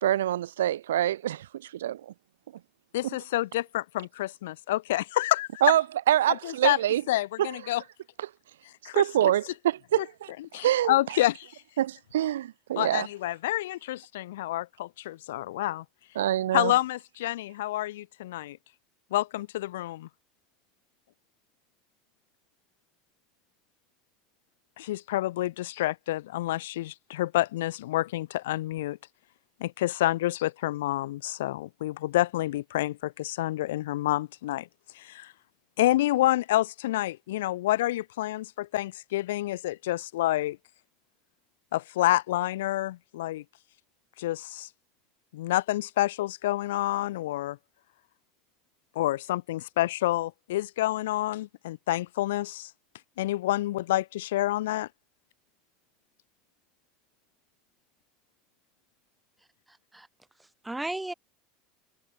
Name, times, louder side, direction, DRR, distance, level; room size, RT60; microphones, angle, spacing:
voice 1, 0.0-2.1 5.6-7.0 7.4-7.5 8.9-10.3 10.6-10.9 11.8-13.1 16.1-16.7, right 12 dB, 90° right, 1.3 m, -25 dB
voice 2, 2.9-5.5 6.4-6.8 7.1-7.8 8.8-9.0 10.5-11.5 12.8-15.8 16.5-18.6 19.1-20.1 24.8-29.0 29.6-34.7 34.9-35.3 35.8-40.6 41.7-43.4 44.2-44.7 45.3-47.6 48.9-52.7 53.2-54.9, left 15 dB, 80° left, 1.2 m, -28 dB
voice 3, 59.7-60.1 60.4-61.1, right 2 dB, 10° right, 7.6 m, -36 dB
hypercardioid pair, 95°, 0 cm